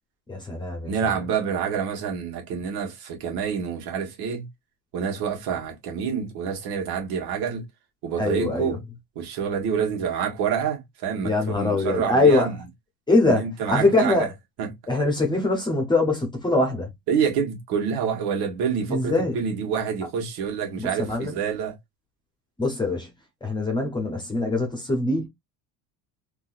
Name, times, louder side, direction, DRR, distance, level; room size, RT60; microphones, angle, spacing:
voice 1, 0.3-1.1 8.2-8.8 11.2-12.5 13.1-14.3 14.9-16.9 18.9-19.4 20.8-21.4 22.6-23.1 23.4-25.3, left 2 dB, 10° left, 0.9 m, -23 dB
voice 2, 0.8-4.5 4.9-7.6 8.0-8.8 9.1-12.6 13.3-14.3 14.6-14.7 17.1-21.7, right 7 dB, 80° right, 1.5 m, -27 dB
3.7 x 2.7 x 2.5 m
cardioid pair, 160°, 39 cm